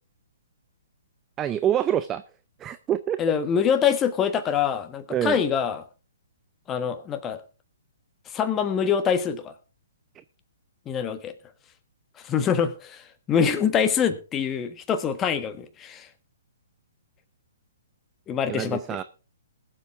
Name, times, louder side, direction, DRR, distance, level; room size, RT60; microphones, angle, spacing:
voice 1, 1.4-2.2 2.6-3.4 5.1-5.4 18.5-19.0, right 10 dB, 20° right, 13 dB, 0.5 m, -26 dB
voice 2, 3.2-5.8 6.7-7.4 8.3-9.5 10.8-11.3 12.2-16.1 18.3-18.8, left 7 dB, 20° left, 10 dB, 1.4 m, -25 dB
20.5 x 7.5 x 3.5 m, 0.33 s
hypercardioid pair, 130°, 0 cm